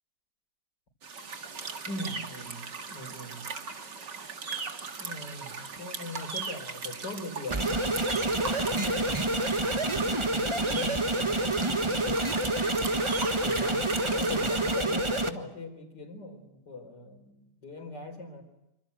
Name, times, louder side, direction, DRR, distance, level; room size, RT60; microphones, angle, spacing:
sound 1, 1.0-14.8, right 5 dB, 90° right, 2.7 m, -39 dB
voice 1, 1.9-2.6 2.9-3.5 4.1-4.4 5.0-7.8 8.2-12.3 13.2-18.4, left 2 dB, 80° left, 6 dB, 5.1 m, -41 dB
sound 2, 7.5-15.3, right 2 dB, 20° right, 1.4 m, -28 dB
27.0 x 25.0 x 8.1 m, 0.89 s
omnidirectional pair, 1.8 m